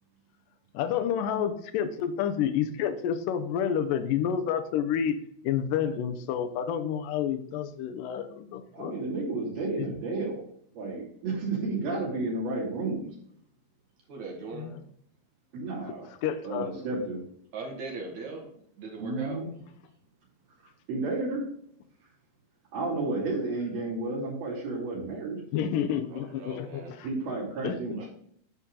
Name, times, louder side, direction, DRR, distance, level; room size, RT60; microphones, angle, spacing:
voice 1, 0.7-5.2 5.4-9.0 9.8-9.9 14.5-14.8 16.2-16.7 25.5-27.1 27.6-27.8, left 9 dB, 75° left, 9 dB, 2.2 m, -29 dB
voice 2, 8.7-10.4 10.7-13.1 15.5-16.1 16.4-17.2 19.0-19.5 20.9-21.4 22.7-25.4 27.0-28.1, right 3 dB, 80° right, -7 dB, 4.7 m, -32 dB
voice 3, 14.1-14.7 16.6-16.9 17.5-19.4 26.1-26.9 27.9-28.1, right 4 dB, 55° right, -1 dB, 3.1 m, -40 dB
12.0 x 4.3 x 3.8 m, 0.68 s
omnidirectional pair, 4.2 m